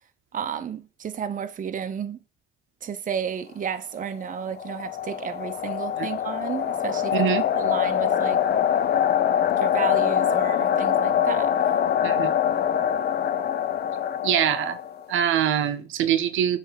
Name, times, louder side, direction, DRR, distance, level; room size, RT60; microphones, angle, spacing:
voice 1, 0.3-2.2 2.8-7.3 7.5-8.4 9.6-11.5, right 7 dB, 40° right, 0.7 m, -32 dB
sound 1, 4.2-15.1, left 9 dB, 55° left, 0.6 m, -24 dB
voice 2, 7.1-7.4 12.0-12.3 14.2-14.8 15.1-16.6, right 10 dB, 80° right, 0.7 m, -23 dB
7.1 x 3.3 x 5.1 m
cardioid pair, 90°, 20 cm